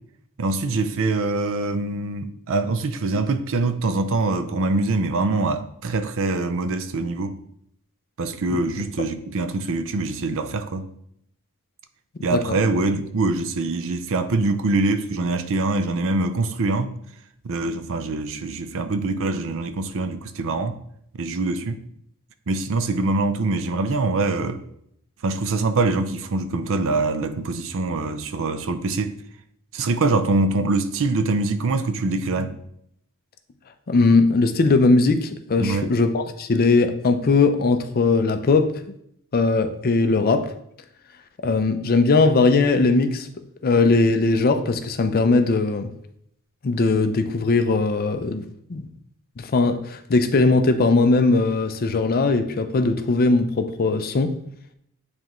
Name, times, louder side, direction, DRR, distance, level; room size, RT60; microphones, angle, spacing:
voice 1, 0.4-7.4 8.2-10.9 12.2-16.9 17.4-20.8 21.2-21.8 22.5-24.6 25.2-29.1 29.7-32.6 35.6-35.9, right 3 dB, 60° right, 0.5 m, -24 dB
voice 2, 12.2-12.6 33.9-38.7 39.3-40.5 41.4-43.3 43.6-45.9 46.6-48.4 48.7-48.9 49.4-54.4, left 3 dB, 40° left, 0.5 m, -19 dB
9.4 x 3.4 x 3.0 m
head